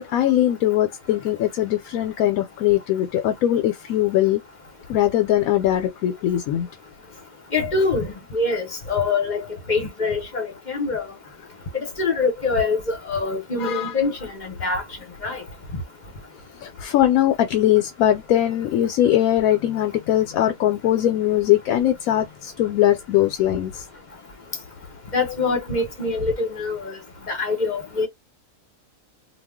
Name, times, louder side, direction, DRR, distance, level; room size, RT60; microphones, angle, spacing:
voice 1, 0.0-4.4 4.9-6.7 13.6-13.9 16.6-23.8, left 12 dB, 85° left, 1.0 m, -21 dB
voice 2, 7.5-9.4 9.7-11.0 11.7-14.8 15.2-15.4 25.1-27.0 27.3-28.1, left 3 dB, 40° left, 0.9 m, -24 dB
2.4 x 2.3 x 3.5 m
omnidirectional pair, 1.4 m